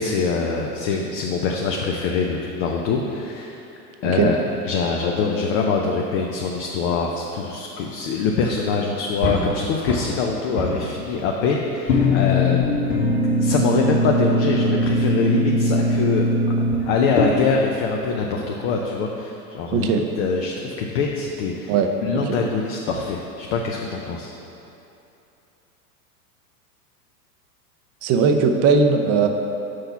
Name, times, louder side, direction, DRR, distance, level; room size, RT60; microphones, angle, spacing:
voice 1, 0.0-3.6 4.0-4.4 4.6-12.8 13.4-16.3 16.9-19.9 20.2-21.7 22.0-24.3, left 4 dB, 45° left, 0 dB, 0.7 m, -24 dB
sound 1, 9.2-10.2 10.5-11.4 11.9-17.2, left 1 dB, 70° left, 1.5 m, -21 dB
voice 2, 19.7-20.0 21.7-21.9 22.3-22.4 28.0-29.3, right 5 dB, 30° right, 5 dB, 0.6 m, -18 dB
6.3 x 4.5 x 5.8 m, 2.8 s
hypercardioid pair, 95°, 48 cm